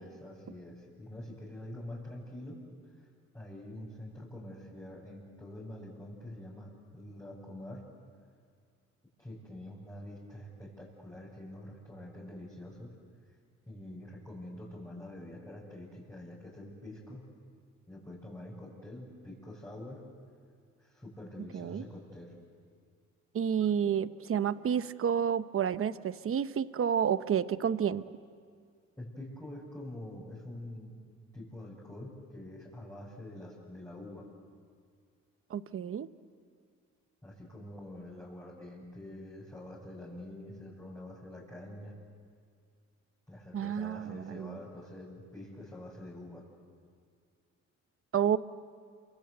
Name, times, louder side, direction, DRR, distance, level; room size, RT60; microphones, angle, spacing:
voice 1, 0.0-2.6 3.3-7.8 9.2-13.0 13.7-17.3 17.9-20.0 20.8-22.3 29.0-31.0 31.3-34.3 37.2-41.9 43.3-46.4, left 1 dB, 10° left, -7 dB, 6.9 m, -46 dB
voice 2, 21.5-21.8 23.3-28.0 35.5-36.1 43.5-44.6 48.1-48.4, right 8 dB, 45° right, 13 dB, 0.9 m, -30 dB
28.0 x 25.0 x 8.1 m, 2.1 s
cardioid pair, 90°, 30 cm